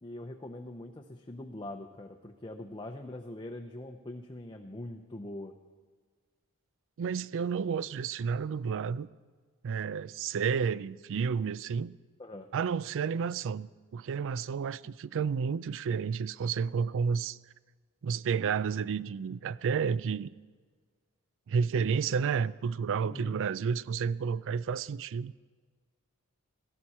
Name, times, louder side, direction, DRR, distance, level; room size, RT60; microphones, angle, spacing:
voice 1, 0.0-5.5 12.2-12.5 14.7-14.8 23.0-23.4, left 1 dB, 20° left, 0.7 m, -43 dB
voice 2, 7.0-9.1 9.6-12.0 12.5-17.4 18.0-20.3 21.5-25.3, right 6 dB, 60° right, 0.4 m, -31 dB
17.0 x 14.5 x 4.3 m
head